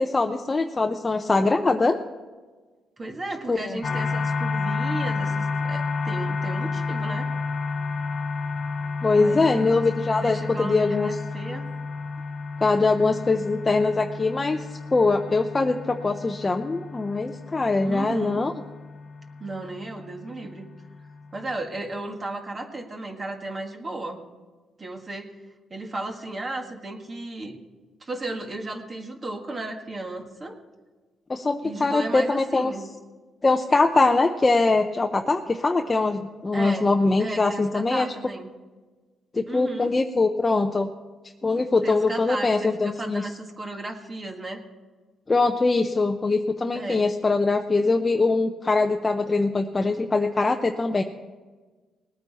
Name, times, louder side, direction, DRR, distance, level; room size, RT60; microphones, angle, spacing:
voice 1, 0.0-2.0 3.5-3.8 9.0-11.1 12.6-14.6 14.9-18.5 31.3-32.7 33.4-38.1 39.3-40.9 41.4-43.2 45.3-51.0, left 3 dB, 25° left, 4 dB, 0.7 m, -22 dB
voice 2, 3.0-7.3 9.1-9.7 10.1-11.7 17.8-18.5 19.4-20.7 21.3-24.3 24.8-25.3 25.7-27.6 28.0-30.6 31.6-32.9 36.5-38.5 39.5-39.9 41.8-44.6 46.7-47.1, right 2 dB, 30° right, 3 dB, 1.6 m, -34 dB
sound 1, 3.8-21.5, left 4 dB, 45° left, 1.1 m, -31 dB
19.5 x 9.0 x 4.2 m, 1.3 s
cardioid pair, 90°, 0 cm